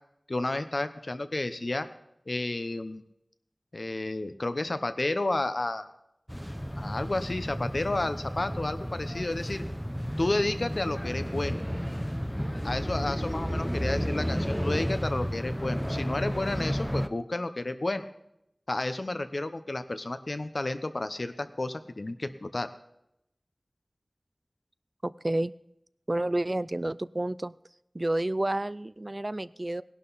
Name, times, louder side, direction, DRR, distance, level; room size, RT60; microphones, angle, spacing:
voice 1, 0.3-1.9 2.3-3.0 3.7-5.9 6.8-9.6 10.2-11.6 12.6-18.1 18.7-22.7, left 2 dB, 70° left, 10 dB, 0.9 m, -31 dB
sound 1, 6.3-17.1, equal, 5° left, 0.7 m, -32 dB
voice 2, 25.0-25.5 26.1-27.5 27.9-29.8, right 1 dB, 40° right, 17 dB, 0.4 m, -30 dB
18.0 x 11.5 x 4.1 m, 0.81 s
wide cardioid pair, 50°, 0 cm